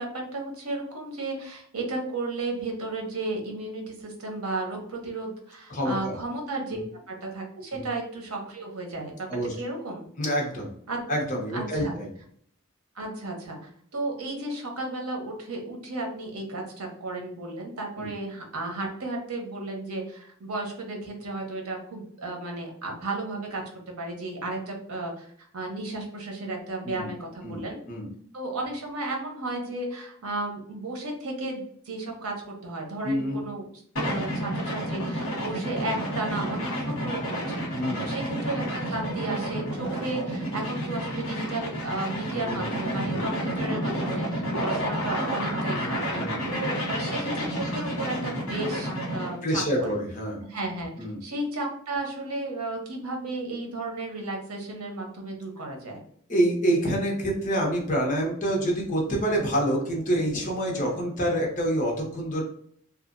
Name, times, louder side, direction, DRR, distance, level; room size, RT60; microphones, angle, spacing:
voice 1, 0.0-6.8 7.1-9.3 9.5-10.0 10.9-11.0 11.5-12.0 12.9-13.6 13.9-25.3 25.5-27.8 28.3-33.6 34.0-37.6 38.0-46.0 46.5-50.0 50.5-50.9 51.2-56.0 60.8-60.9, right 2 dB, 85° right, 1 dB, 0.8 m, -34 dB
voice 2, 5.7-6.1 6.7-6.8 7.7-7.8 9.3-9.5 10.2-10.7 11.1-12.1 18.0-18.1 26.8-27.1 27.4-27.6 27.9-28.1 33.0-33.4 37.7-38.0 42.3-42.6 43.0-43.3 44.3-44.5 46.1-46.3 49.4-50.4 51.0-51.2 56.3-62.4, right 1 dB, 35° left, -1 dB, 0.8 m, -27 dB
sound 1, 34.0-49.4, equal, 70° left, 1.0 m, -30 dB
2.9 x 2.3 x 2.5 m, 0.62 s
head